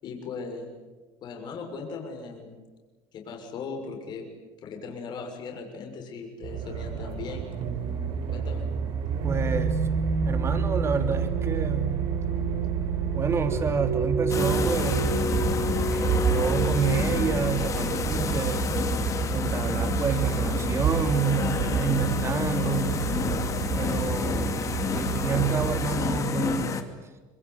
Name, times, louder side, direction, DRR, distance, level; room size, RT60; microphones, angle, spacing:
voice 1, 0.0-0.7 1.2-2.5 3.1-4.3 4.6-7.5 8.3-8.7, left 4 dB, 50° left, 2 dB, 6.3 m, -38 dB
sound 1, 6.4-26.2, right 5 dB, 65° right, 5.6 m, -28 dB
voice 2, 9.2-9.8 10.2-12.0 13.1-15.2 15.4-18.7 19.3-22.9 23.7-24.6 24.9-26.7, right 6 dB, 30° right, 8 dB, 3.4 m, -29 dB
sound 2, 14.3-26.8, left 6 dB, 35° left, 2.6 m, -30 dB
26.0 x 22.5 x 9.8 m, 1.3 s
supercardioid pair, 115°, 10 cm